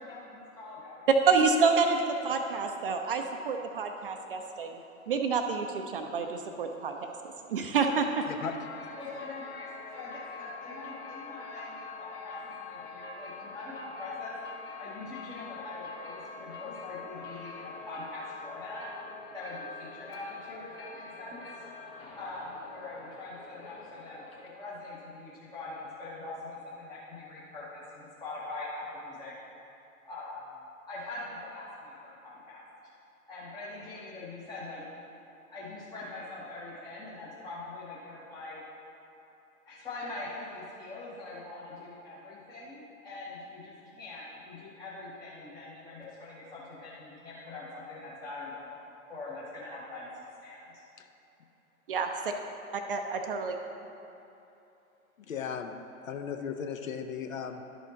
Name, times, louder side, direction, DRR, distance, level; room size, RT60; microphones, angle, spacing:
voice 1, 0.0-1.1 9.0-9.7 9.9-14.4 14.8-18.9 19.3-21.4 22.2-29.3 30.0-30.5 30.9-32.6 33.3-34.8 35.5-38.6 39.7-48.8 49.1-50.1 50.4-50.8, left 2 dB, 10° left, -8 dB, 0.7 m, -43 dB
voice 2, 1.3-4.8 5.1-7.1 7.5-8.2 51.9-52.3 52.7-53.6, right 5 dB, 40° right, 5 dB, 0.5 m, -28 dB
voice 3, 8.3-8.6 51.0-51.1 55.3-55.7 56.1-57.6, left 7 dB, 65° left, 7 dB, 0.7 m, -36 dB
sound 1, 8.3-24.7, left 4 dB, 45° left, 1.3 m, -45 dB
11.5 x 5.1 x 3.8 m, 2.9 s
figure-of-eight pair, 110°, 43 cm